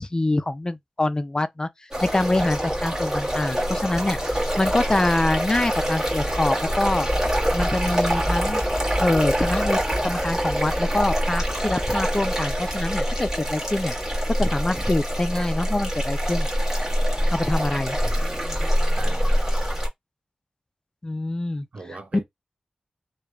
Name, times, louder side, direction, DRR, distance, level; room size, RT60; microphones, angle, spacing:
voice 1, 0.0-1.7 2.0-7.1 7.5-8.6 9.0-13.9 14.3-16.5 17.3-18.0 21.0-21.7, left 2 dB, 30° left, 0.4 m, -25 dB
sound 1, 1.9-19.9, equal, 20° right, 1.5 m, -25 dB
voice 2, 18.9-19.4 21.7-22.2, right 3 dB, 60° right, 0.8 m, -38 dB
3.1 x 2.2 x 2.3 m
cardioid pair, 50°, 3 cm